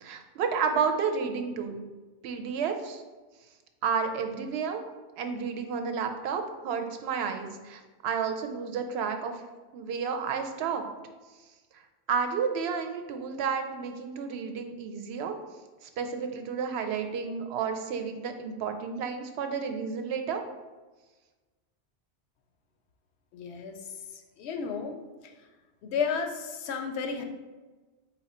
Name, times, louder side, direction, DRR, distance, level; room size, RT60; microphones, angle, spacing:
voice 1, 0.0-1.8 2.2-3.0 3.8-4.8 5.2-9.4 9.7-10.9 12.1-15.4 15.8-20.4, right 6 dB, 75° right, 6 dB, 0.8 m, -31 dB
voice 2, 23.3-23.9 24.4-25.3 25.8-27.2, left 5 dB, 80° left, 5 dB, 0.9 m, -33 dB
4.3 x 2.9 x 4.2 m, 1.2 s
omnidirectional pair, 1.1 m